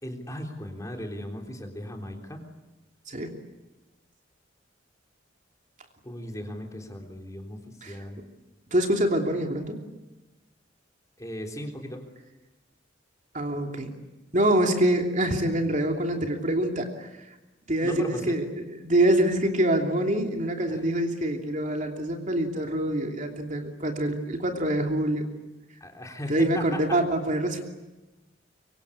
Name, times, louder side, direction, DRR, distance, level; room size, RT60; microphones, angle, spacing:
voice 1, 0.0-2.4 6.0-7.6 7.9-8.2 11.2-12.0 17.8-18.4 20.7-20.8 25.8-27.0, left 1 dB, 15° left, 3 dB, 3.7 m, -37 dB
voice 2, 8.7-9.8 13.3-13.9 14.3-17.1 17.7-25.3 26.3-27.6, right 1 dB, 40° right, 3 dB, 3.0 m, -25 dB
25.0 x 24.5 x 8.6 m, 1.1 s
head